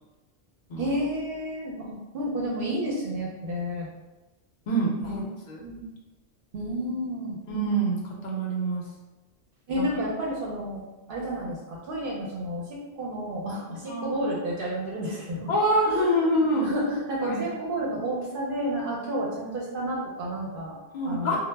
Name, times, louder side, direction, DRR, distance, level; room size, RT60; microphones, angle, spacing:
voice 1, 0.8-3.9 5.0-5.3 5.6-5.8 6.5-7.4 9.7-10.8 11.1-15.5 15.9-20.8 21.0-21.4, equal, 60° right, -4 dB, 0.7 m, -31 dB
voice 2, 4.7-5.6 7.5-8.8 9.7-9.9 13.9-14.2 15.5-16.7 17.2-17.4 20.9-21.4, right 1 dB, 55° left, -2 dB, 0.6 m, -26 dB
2.0 x 2.0 x 3.2 m, 1.1 s
omnidirectional pair, 1.2 m